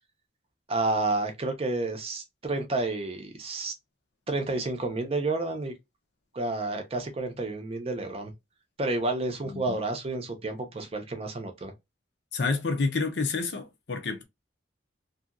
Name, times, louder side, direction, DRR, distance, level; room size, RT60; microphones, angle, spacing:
voice 1, 0.7-3.7 4.3-5.7 6.3-8.3 8.8-11.7, right 2 dB, 30° right, 0.6 m, -30 dB
voice 2, 9.4-9.8 12.3-14.2, left 4 dB, 60° left, 0.6 m, -29 dB
2.8 x 2.7 x 2.4 m
head